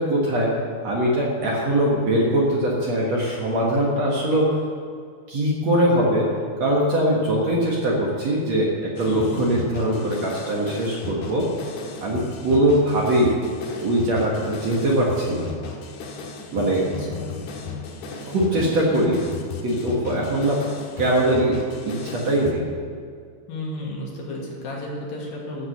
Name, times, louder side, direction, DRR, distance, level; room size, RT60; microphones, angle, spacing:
voice 1, 0.0-4.5 5.3-6.3 6.6-11.5 12.0-13.4 13.8-15.5 16.5-16.9 18.3-19.2 19.6-20.6 21.0-21.6 21.9-22.7, right 1 dB, 50° right, -4 dB, 2.4 m, -21 dB
sound 1, 9.0-22.5, left 5 dB, 90° left, 3.5 m, -36 dB
voice 2, 9.0-9.4 16.8-17.4 18.1-18.3 18.5-18.9 23.5-25.7, left 1 dB, 65° left, -3 dB, 3.8 m, -33 dB
13.5 x 8.6 x 6.7 m, 2.2 s
omnidirectional pair, 4.6 m